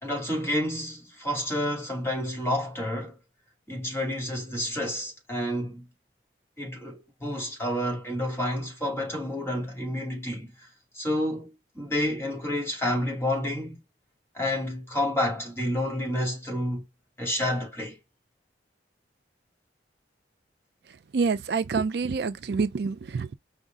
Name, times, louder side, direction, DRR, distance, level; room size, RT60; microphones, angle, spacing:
voice 1, 0.0-3.2 3.7-5.9 6.6-10.7 10.9-13.8 14.3-16.8 17.2-18.0, left 1 dB, 15° left, 2.4 m, -29 dB
voice 2, 21.1-23.3, right 5 dB, 60° right, 0.4 m, -27 dB
5.2 x 2.3 x 3.7 m
head